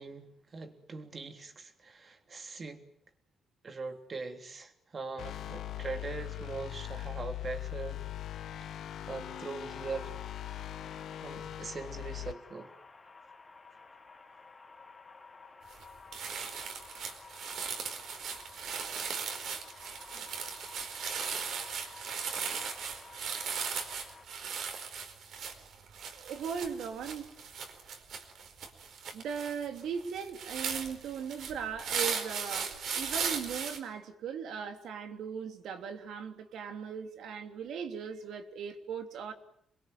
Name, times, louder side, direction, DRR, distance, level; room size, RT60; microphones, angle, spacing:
voice 1, 0.0-2.8 3.6-8.0 9.1-10.1 11.2-12.7, right 4 dB, 35° right, 3.4 m, -41 dB
sound 1, 5.2-12.3, left 12 dB, 80° left, 1.4 m, -40 dB
sound 2, 9.2-24.2, left 4 dB, 20° left, 2.7 m, -53 dB
sound 3, 15.7-15.8 16.1-33.8, right 6 dB, 70° right, 4.7 m, -37 dB
voice 2, 26.2-27.3 29.1-39.3, right 7 dB, 90° right, 3.2 m, -38 dB
27.5 x 22.0 x 9.5 m
cardioid pair, 135°, 0 cm